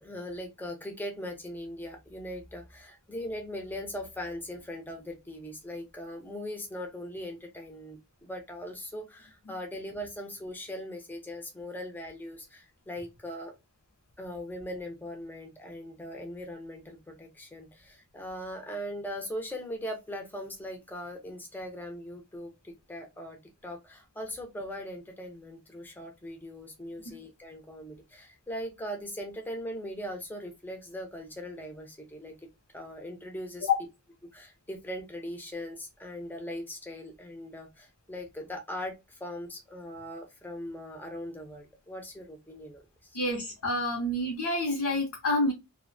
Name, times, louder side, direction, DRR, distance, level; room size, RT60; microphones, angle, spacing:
voice 1, 0.0-13.5 14.2-32.4 32.7-33.7 34.3-43.2, equal, 10° left, 3 dB, 0.4 m, -40 dB
voice 2, 43.1-45.5, left 2 dB, 75° left, -1 dB, 0.6 m, -28 dB
2.5 x 2.0 x 2.4 m, 0.24 s
head